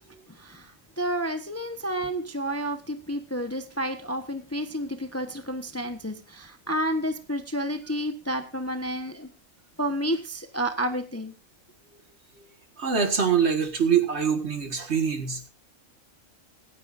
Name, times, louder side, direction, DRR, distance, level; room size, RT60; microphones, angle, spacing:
voice 1, 0.4-0.7 1.0-9.3 9.8-11.3, equal, 10° left, 8 dB, 0.9 m, -30 dB
voice 2, 12.8-15.5, right 7 dB, 55° right, 7 dB, 1.9 m, -24 dB
25.0 x 9.5 x 2.6 m, 0.30 s
omnidirectional pair, 1.4 m